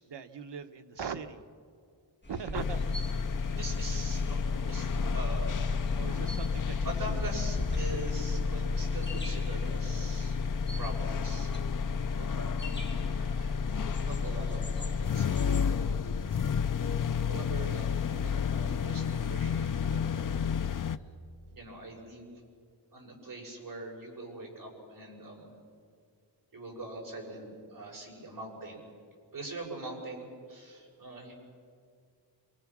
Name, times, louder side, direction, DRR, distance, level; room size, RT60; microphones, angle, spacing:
voice 1, 0.1-1.4 2.3-3.0 6.0-7.2 12.2-12.7, right 6 dB, 65° right, 6 dB, 1.2 m, -40 dB
sound 1, 2.2-15.7, left 1 dB, 25° left, 2.0 m, -43 dB
sound 2, 2.5-21.0, left 6 dB, 45° left, 0.6 m, -31 dB
voice 2, 3.5-4.4 4.6-6.5 6.8-10.4 10.8-11.7 12.1-12.4 13.0-15.9 16.2-16.4 16.7-20.4 21.5-22.3 22.9-25.5 26.5-28.9 29.3-31.3, right 2 dB, 45° right, -2 dB, 6.5 m, -43 dB
27.5 x 23.5 x 6.1 m, 2.2 s
wide cardioid pair, 145°, 45 cm